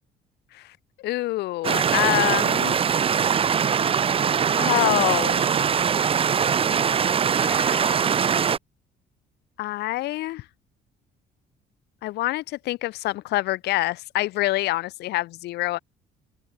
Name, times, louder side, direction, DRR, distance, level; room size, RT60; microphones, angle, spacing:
voice 1, 1.0-2.8 4.6-5.5 7.4-8.1 9.6-10.4 12.0-15.8, left 17 dB, 80° left, 1.1 m, -26 dB
sound 1, 1.6-8.6, right 7 dB, 35° right, 0.8 m, -22 dB
open air
cardioid pair, 110°, 17 cm